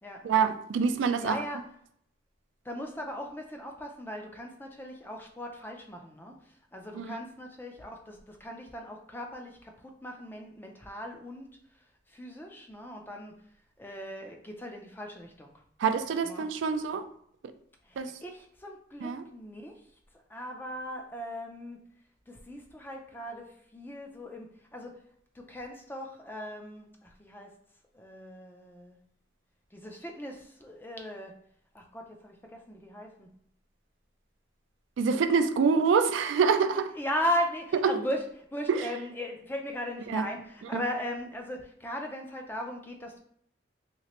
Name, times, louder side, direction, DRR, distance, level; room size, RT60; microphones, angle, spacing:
voice 1, 0.2-1.4 7.0-7.1 15.8-17.1 18.0-18.1 19.0-19.2 35.0-36.9 38.7-38.8 40.1-40.2 40.7-40.8, right 5 dB, 75° right, 0.3 m, -26 dB
voice 2, 1.2-1.6 2.6-13.3 13.8-15.5 16.2-16.5 17.8-19.9 20.1-21.8 22.3-25.0 25.3-27.5 27.9-29.0 29.7-31.3 31.7-33.3 37.0-38.3 38.5-43.2, equal, 10° left, 0.4 m, -38 dB
3.2 x 2.9 x 2.9 m
head